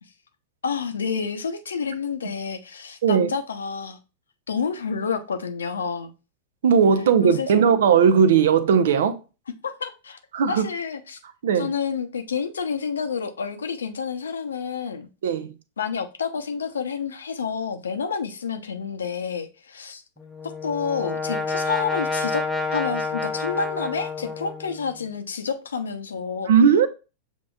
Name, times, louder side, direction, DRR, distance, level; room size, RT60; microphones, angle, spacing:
voice 1, 0.6-4.0 4.5-6.1 7.2-7.5 9.6-10.2 10.5-11.2 11.6-15.1 15.8-20.0 20.6-22.4 22.7-26.5, left 6 dB, 70° left, 0.7 m, -29 dB
voice 2, 6.6-9.2 10.3-10.7 11.4-11.7 15.2-15.5 26.5-26.9, right 7 dB, 60° right, 0.6 m, -18 dB
Brass instrument, 20.2-25.0, left 3 dB, ahead, 0.6 m, -29 dB
7.1 x 2.9 x 2.3 m
figure-of-eight pair, 90°, 0 cm